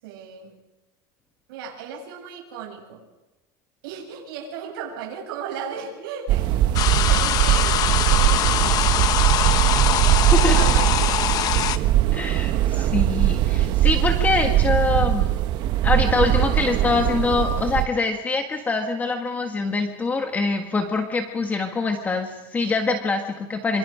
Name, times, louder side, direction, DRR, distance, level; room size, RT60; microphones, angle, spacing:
voice 1, 0.0-0.5 1.5-3.1 3.8-6.5 6.8-9.4 10.4-11.2 12.6-13.0, right 6 dB, 70° right, -2 dB, 7.7 m, -36 dB
sound 1, 6.3-17.9, right 13 dB, 40° right, 1.0 m, -20 dB
sound 2, 6.7-11.8, left 11 dB, 30° left, 1.0 m, -23 dB
voice 2, 12.1-15.3 15.8-23.8, left 3 dB, 15° left, 4 dB, 1.5 m, -24 dB
28.0 x 26.0 x 5.1 m, 1.0 s
supercardioid pair, 170°, 12 cm